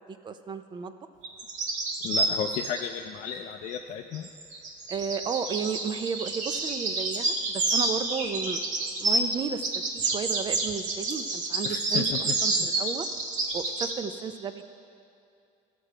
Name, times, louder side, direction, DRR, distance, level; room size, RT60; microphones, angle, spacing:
voice 1, 0.2-0.9 4.9-9.6 9.9-13.1 13.5-14.6, right 6 dB, 30° right, 10 dB, 0.4 m, -33 dB
sound 1, 1.2-2.8 4.1-9.4 9.6-13.9, right 2 dB, 50° right, 1.1 m, -29 dB
voice 2, 2.0-4.3 11.6-12.7, left 9 dB, 50° left, 4 dB, 0.4 m, -34 dB
14.0 x 6.7 x 4.9 m, 2.5 s
cardioid pair, 140°, 16 cm